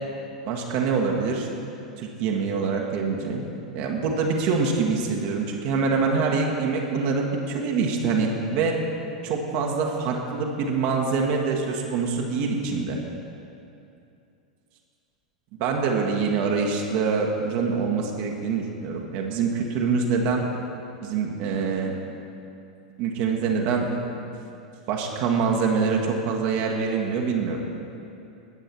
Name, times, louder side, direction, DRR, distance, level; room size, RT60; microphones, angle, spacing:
voice 1, 0.4-1.5 2.0-3.4 3.7-8.8 9.2-13.0 15.6-20.4 21.0-22.0 23.0-23.9 24.9-27.6, right 5 dB, 45° right, 0 dB, 1.4 m, -25 dB
19.5 x 8.0 x 4.4 m, 2.7 s
figure-of-eight pair, 90°, 4 cm